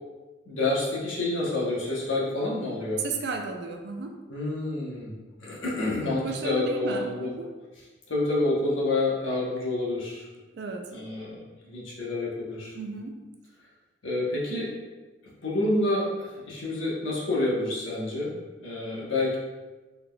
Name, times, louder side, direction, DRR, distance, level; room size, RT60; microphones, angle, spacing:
voice 1, 0.5-3.0 4.3-5.2 5.4-7.3 8.1-10.3 10.9-12.7 14.0-14.7 15.4-18.3 18.6-19.4, left 2 dB, 85° left, -5 dB, 1.0 m, -28 dB
voice 2, 3.0-4.2 6.1-7.5 10.5-10.9 12.7-13.2, right 4 dB, 60° right, 4 dB, 0.4 m, -34 dB
4.0 x 3.4 x 2.2 m, 1.2 s
head